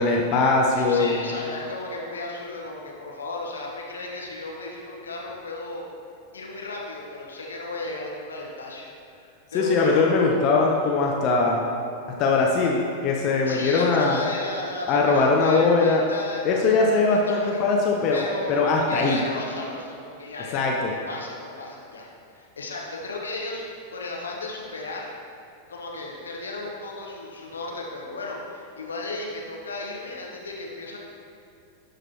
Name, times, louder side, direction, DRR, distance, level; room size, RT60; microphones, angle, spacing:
voice 1, 0.0-1.2 9.5-11.6 12.2-14.2 14.9-16.0 16.4-19.2 20.5-20.9, left 3 dB, 40° left, -1 dB, 0.7 m, -21 dB
voice 2, 0.8-5.8 6.3-8.9 9.1-10.1 13.4-16.7 17.1-17.6 18.1-22.1 22.3-23.6 23.9-25.1 25.7-31.0, left 2 dB, 70° left, -2 dB, 1.1 m, -35 dB
12.0 x 4.9 x 3.0 m, 2.7 s
figure-of-eight pair, 90°, 0 cm